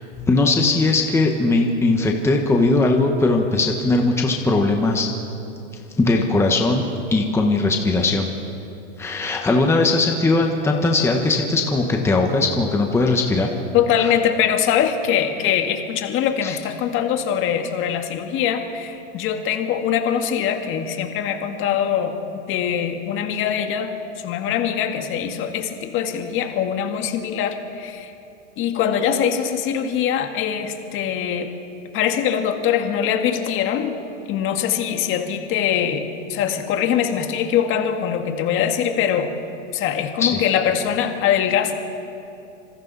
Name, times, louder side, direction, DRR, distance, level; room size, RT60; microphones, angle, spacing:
voice 1, 0.1-5.1 6.0-6.8 7.1-8.3 9.0-13.5 14.0-14.1 16.4-16.6 40.2-40.4, left 2 dB, 5° left, 2 dB, 1.3 m, -19 dB
voice 2, 13.7-22.2 22.5-24.0 24.2-28.1 28.6-31.5 31.9-34.0 34.3-39.3 39.7-41.7, left 8 dB, 30° left, 5 dB, 1.9 m, -22 dB
26.5 x 26.0 x 4.2 m, 2.7 s
hypercardioid pair, 140°, 39 cm